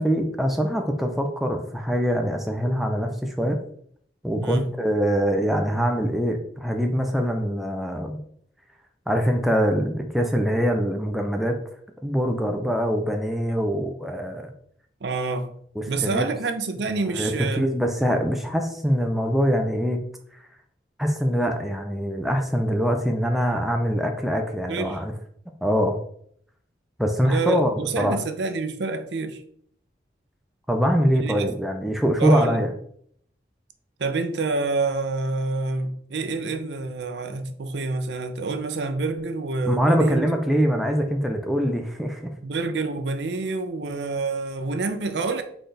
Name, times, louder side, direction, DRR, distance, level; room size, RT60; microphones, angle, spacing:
voice 1, 0.0-3.6 4.2-8.2 9.1-11.5 12.0-14.5 15.8-16.3 16.9-20.0 21.0-25.1 25.6-26.0 27.0-28.2 30.7-32.7 39.7-42.3, equal, ahead, 0.4 m, -23 dB
voice 2, 4.4-4.7 15.0-15.5 15.9-17.7 24.7-25.0 27.2-29.4 31.2-31.5 32.2-32.7 34.0-40.3 42.4-45.4, right 3 dB, 80° right, 0.5 m, -27 dB
4.0 x 3.9 x 3.3 m
head